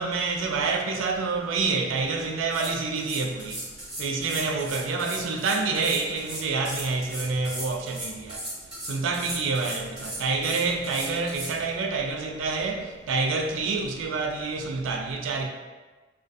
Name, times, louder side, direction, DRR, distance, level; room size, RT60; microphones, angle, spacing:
voice 1, 0.0-15.5, right 4 dB, 90° right, 0.3 m, -28 dB
sound 1, 2.2-2.3 2.5-11.5, right 1 dB, 5° right, 1.3 m, -37 dB
2.5 x 2.3 x 2.4 m
head